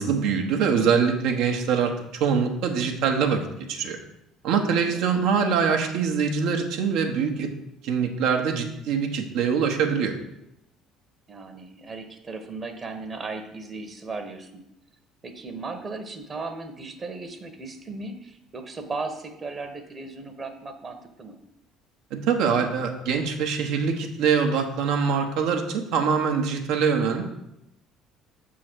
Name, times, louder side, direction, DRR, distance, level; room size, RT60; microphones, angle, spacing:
voice 1, 0.0-3.4 3.7-4.0 4.4-7.5 7.8-10.1 22.1-27.2, right 6 dB, 70° right, 3 dB, 1.0 m, -24 dB
voice 2, 4.6-5.0 11.3-14.5 15.2-21.4, right 3 dB, 35° right, 7 dB, 1.0 m, -36 dB
6.3 x 3.8 x 6.1 m, 0.83 s
hypercardioid pair, 65°, 0 cm